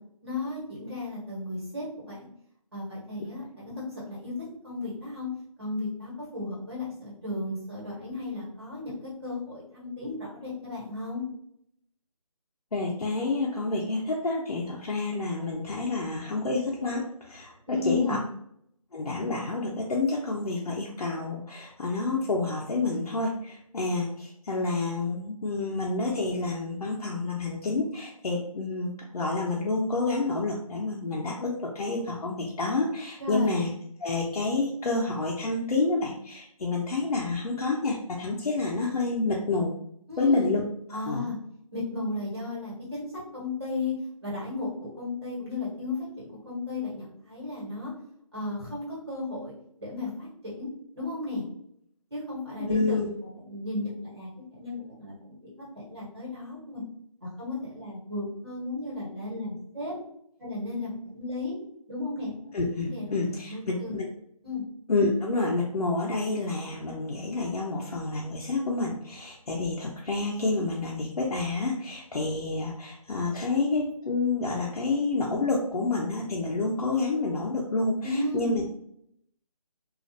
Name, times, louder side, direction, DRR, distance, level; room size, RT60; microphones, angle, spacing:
voice 1, 0.2-2.3 2.7-5.3 5.6-11.2 17.7-18.2 33.2-33.6 40.1-40.5 40.9-41.4 41.7-43.1 43.3-47.9 48.3-49.5 49.8-50.7 50.9-51.4 52.1-53.0 53.4-56.8 57.2-59.9 60.4-61.5 61.9-62.5 62.9-64.0 64.4-64.6 78.0-78.6, left 2 dB, 45° right, -7 dB, 1.3 m, -34 dB
voice 2, 12.7-18.2 18.9-33.7 34.0-39.7 40.2-40.6 40.9-41.3 52.7-53.1 62.5-64.1 64.9-78.6, left 3 dB, 85° left, -3 dB, 0.6 m, -29 dB
2.4 x 2.0 x 2.6 m, 0.69 s
figure-of-eight pair, 180°, 19 cm